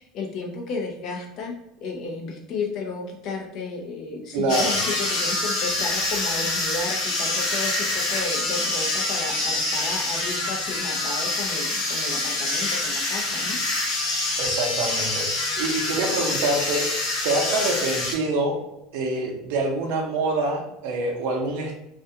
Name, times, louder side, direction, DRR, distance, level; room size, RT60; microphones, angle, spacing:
voice 1, 0.0-1.5 1.8-13.6, left 4 dB, 50° left, 1 dB, 0.5 m, -33 dB
voice 2, 4.3-4.8 14.4-16.9 17.2-18.6 18.9-21.7, right 2 dB, 75° right, 1 dB, 0.6 m, -26 dB
sound 1, 4.5-18.1, left 2 dB, 65° left, 0.9 m, -26 dB
2.4 x 2.2 x 2.7 m, 0.87 s
cardioid pair, 145°, 0 cm